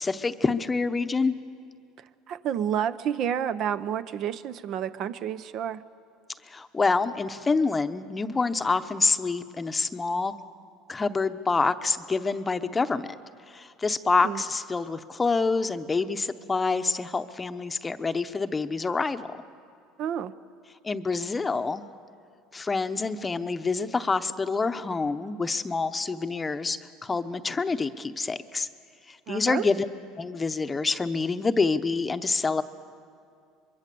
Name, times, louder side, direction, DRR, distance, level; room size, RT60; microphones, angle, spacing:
voice 1, 0.0-1.3 6.5-10.3 10.9-13.2 13.5-19.4 20.8-21.9 22.5-28.7 29.1-29.9 30.2-32.6, left 4 dB, 20° left, 10 dB, 0.8 m, -27 dB
voice 2, 2.0-5.8 14.2-14.4 20.0-20.3 29.3-29.7, right 9 dB, 55° right, 13 dB, 0.7 m, -30 dB
24.0 x 22.5 x 6.9 m, 2.3 s
supercardioid pair, 110°, 0 cm